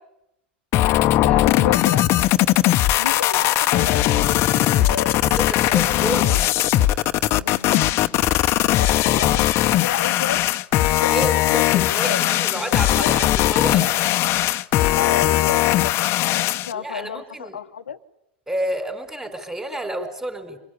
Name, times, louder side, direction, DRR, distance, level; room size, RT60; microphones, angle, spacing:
sound 1, 0.7-16.7, left 14 dB, 45° left, 0.9 m, -19 dB
voice 1, 0.8-2.2 3.0-5.2 5.6-6.4 7.4-7.9 8.8-10.4 10.8-11.7 11.9-12.2 12.5-13.2 15.0-18.0, left 8 dB, 90° left, 6 dB, 1.0 m, -32 dB
voice 2, 5.4-6.5 8.9-9.0 11.1-14.1 16.7-17.6 18.5-20.6, right 1 dB, 10° right, 8 dB, 5.0 m, -30 dB
26.5 x 21.5 x 9.7 m, 0.85 s
hypercardioid pair, 105°, 6 cm